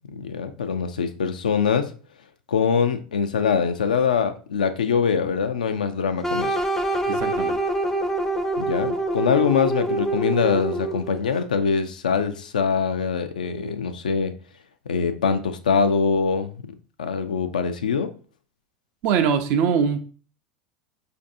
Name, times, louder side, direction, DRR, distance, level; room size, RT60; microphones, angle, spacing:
voice 1, 0.1-1.9 2.5-6.6 8.6-14.3 14.9-16.5 17.0-18.1, left 6 dB, 85° left, 0.3 m, -23 dB
sound 1, 6.2-11.2, right 2 dB, 10° left, 0.4 m, -25 dB
voice 2, 7.1-7.6 19.0-20.0, right 7 dB, 55° right, 0.5 m, -22 dB
4.5 x 2.6 x 2.5 m
hypercardioid pair, 85°, 4 cm